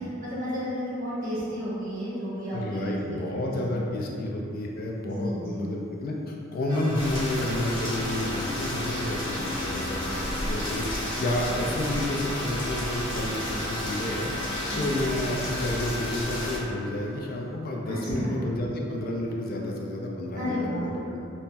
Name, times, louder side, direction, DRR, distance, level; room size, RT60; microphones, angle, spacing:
voice 1, 0.2-3.8 5.0-5.6 14.7-15.0 17.8-18.4 20.3-20.9, equal, 45° right, -11 dB, 1.4 m, -32 dB
voice 2, 2.5-14.3 14.7-20.6 20.8-21.2, left 1 dB, 50° left, -1 dB, 0.3 m, -30 dB
sound 1, 6.7-17.5, left 1 dB, 25° right, 0.9 m, -38 dB
Rain, 6.9-16.6, left 1 dB, 70° left, 1.0 m, -32 dB
5.4 x 2.0 x 2.2 m, 2.7 s
head